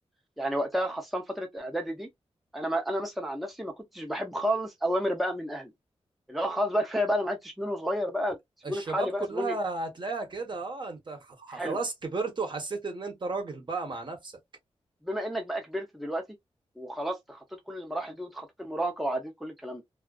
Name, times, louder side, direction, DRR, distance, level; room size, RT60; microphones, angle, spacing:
voice 1, 0.4-2.1 2.5-5.7 6.3-8.4 8.7-9.6 11.5-11.8 15.0-16.2 16.8-19.8, equal, ahead, 0.6 m, -31 dB
voice 2, 8.6-14.3, right 3 dB, 45° right, 0.9 m, -34 dB
2.4 x 2.3 x 2.2 m
wide cardioid pair, 80°, 11 cm